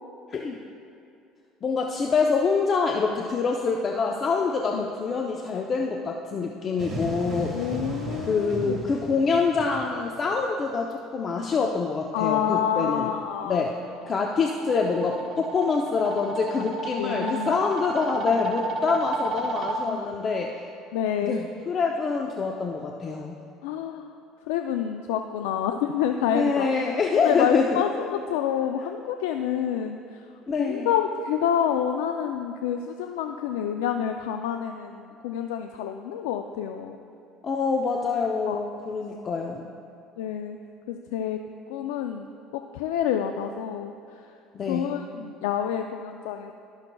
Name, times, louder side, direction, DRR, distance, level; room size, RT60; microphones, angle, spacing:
voice 1, 1.6-7.6 8.3-13.1 13.4-13.8 14.1-20.5 21.2-23.4 26.3-27.8 30.5-30.9 37.4-39.6 44.5-44.9, left 4 dB, 40° left, 1 dB, 0.6 m, -26 dB
sound 1, 6.8-10.3, right 1 dB, 30° right, 1.9 m, -35 dB
voice 2, 7.5-8.8 12.1-13.6 16.6-16.7 17.0-17.6 19.9-20.1 20.9-21.4 23.6-24.2 24.5-26.7 27.1-30.2 30.6-37.0 38.5-38.6 40.2-40.6 40.9-41.4 41.7-43.9 44.7-46.5, left 9 dB, 85° left, 5 dB, 0.3 m, -28 dB
sound 2, 13.7-19.8, right 2 dB, 50° right, 0.8 m, -32 dB
19.0 x 6.5 x 2.3 m, 2.6 s
supercardioid pair, 90°, 0 cm